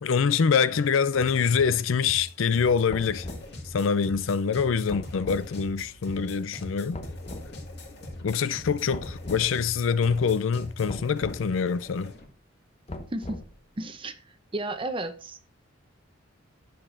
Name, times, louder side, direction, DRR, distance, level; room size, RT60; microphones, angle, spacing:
voice 1, 0.0-3.3 3.7-7.0 8.2-12.1, left 6 dB, 75° left, 0.4 m, -25 dB
sound 1, 1.2-12.3, left 1 dB, 55° left, 2.0 m, -43 dB
sound 2, 2.9-3.5 4.9-5.5 6.9-7.5 8.9-9.5 10.9-11.4 12.9-13.6, left 1 dB, 30° left, 0.8 m, -39 dB
voice 2, 13.8-14.2 14.5-15.4, right 2 dB, 25° right, 0.7 m, -32 dB
10.0 x 6.7 x 2.6 m
head